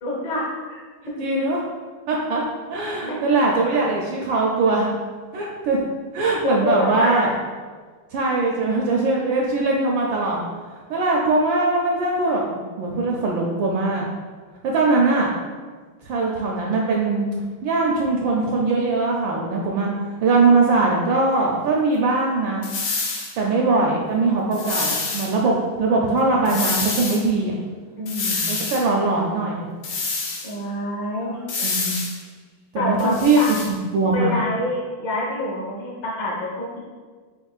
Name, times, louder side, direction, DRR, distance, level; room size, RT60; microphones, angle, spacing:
voice 1, 0.0-0.8 1.1-1.2 3.0-3.2 6.4-7.4 26.0-26.4 28.0-28.6 30.4-31.4 32.7-33.5 34.1-36.8, left 1 dB, 55° left, -4 dB, 1.7 m, -27 dB
voice 2, 1.2-1.6 2.1-2.4 2.7-4.9 5.3-5.8 6.1-7.3 8.1-10.4 10.9-12.4 12.8-14.1 14.6-15.3 16.0-17.3 17.6-19.9 20.2-22.7 23.4-27.5 28.5-29.7 31.6-31.9 32.7-33.6 33.9-34.4, right 3 dB, 75° right, -2 dB, 1.1 m, -21 dB
sound 1, 22.6-23.3 24.5-25.3 26.5-27.2 28.1-28.8 29.8-30.5 31.5-32.2 33.0-33.7, left 4 dB, 75° left, 1.6 m, -27 dB
5.3 x 4.1 x 2.4 m, 1.5 s
omnidirectional pair, 2.4 m